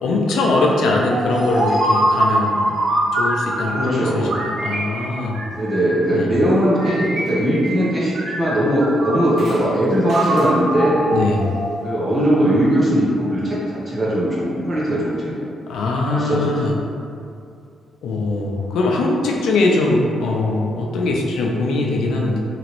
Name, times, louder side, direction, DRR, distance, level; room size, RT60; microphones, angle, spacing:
voice 1, 0.0-2.6 3.1-5.4 6.1-6.3 11.1-11.5 15.7-16.7 18.0-22.4, left 2 dB, 90° left, -1 dB, 0.4 m, -21 dB
sound 1, 1.1-3.9 4.3-6.1 6.7-7.9 8.1-9.6 10.1-11.9, right 1 dB, 60° right, 0.5 m, -23 dB
sound 2, 1.2-6.7, left 1 dB, 40° left, 0.5 m, -38 dB
voice 2, 3.7-4.3 5.5-11.0 11.8-15.5 16.1-16.5, right 1 dB, 25° right, -7 dB, 0.8 m, -19 dB
3.0 x 2.6 x 2.9 m, 2.4 s
cardioid pair, 150°, 0 cm